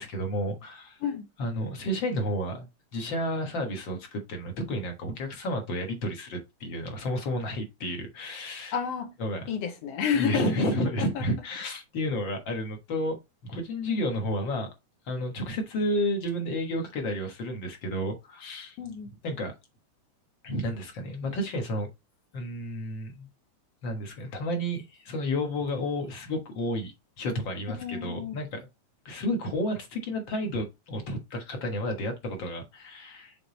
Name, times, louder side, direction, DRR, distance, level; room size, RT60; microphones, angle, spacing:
voice 1, 0.0-1.0 1.4-2.7 2.9-8.8 9.2-9.5 10.2-13.2 13.4-14.7 15.1-18.8 19.2-19.5 20.4-21.9 22.3-23.3 23.8-28.7 29.1-33.4, equal, 50° left, 1.8 m, -31 dB
voice 2, 8.7-9.1 9.5-10.5 11.0-11.2 18.8-19.1 27.7-28.3, left 7 dB, 70° left, 1.8 m, -30 dB
6.9 x 3.8 x 4.0 m
omnidirectional pair, 3.4 m